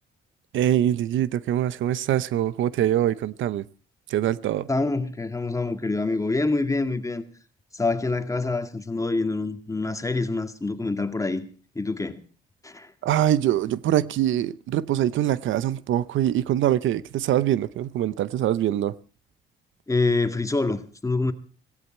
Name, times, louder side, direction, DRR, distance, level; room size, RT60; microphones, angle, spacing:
voice 1, 0.5-3.6 4.1-4.7 13.0-18.9, right 12 dB, 75° right, 0.8 m, -23 dB
voice 2, 4.7-7.2 7.7-11.5 11.8-12.2 12.6-12.9 19.9-21.3, left 3 dB, 15° left, 2.0 m, -26 dB
17.5 x 16.0 x 4.4 m
cardioid pair, 90°, 20 cm